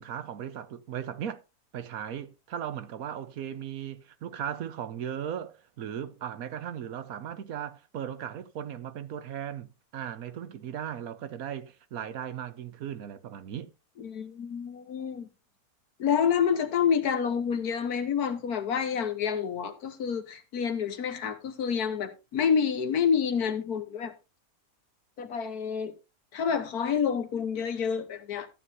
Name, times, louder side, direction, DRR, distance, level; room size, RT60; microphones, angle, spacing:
voice 1, 0.0-1.4 1.7-13.7, right 9 dB, 75° right, 1.3 m, -37 dB
voice 2, 14.0-15.3 16.0-24.1 25.2-25.9 26.3-28.5, left 7 dB, 90° left, 1.7 m, -28 dB
13.5 x 9.5 x 2.7 m
omnidirectional pair, 1.5 m